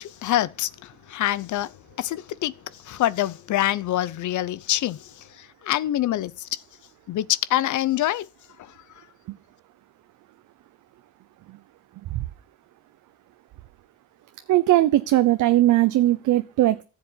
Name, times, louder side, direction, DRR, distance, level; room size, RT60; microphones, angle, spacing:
voice 1, 0.0-1.7 2.0-2.5 2.8-5.1 5.6-6.6 7.1-8.3, left 13 dB, 75° left, 0.9 m, -25 dB
voice 2, 14.5-16.8, right 15 dB, 80° right, 0.8 m, -19 dB
14.5 x 7.5 x 9.6 m
cardioid pair, 90°, 30 cm